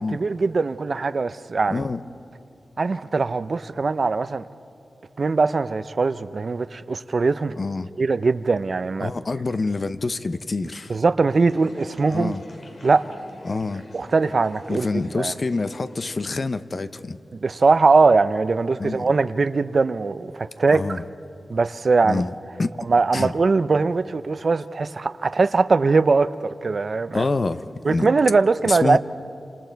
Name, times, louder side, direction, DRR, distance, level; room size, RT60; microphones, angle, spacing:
voice 1, 0.1-1.8 2.8-4.4 5.2-7.5 8.0-9.1 10.9-12.4 12.8-13.1 13.9-14.9 15.2-15.3 17.4-21.0 21.5-22.2 22.9-27.2 27.8-29.0, right 4 dB, 50° right, 0.6 m, -21 dB
voice 2, 1.7-2.0 7.6-7.9 9.0-11.0 12.1-12.4 13.4-13.8 14.7-17.2 18.8-19.1 20.7-21.0 22.0-22.3 22.6-22.7 23.1-23.3 27.1-28.1 28.6-29.0, left 3 dB, 45° left, 0.7 m, -26 dB
sound 1, 11.3-16.5, left 1 dB, 65° left, 2.7 m, -45 dB
28.5 x 27.0 x 4.6 m
wide cardioid pair, 90°, 0 cm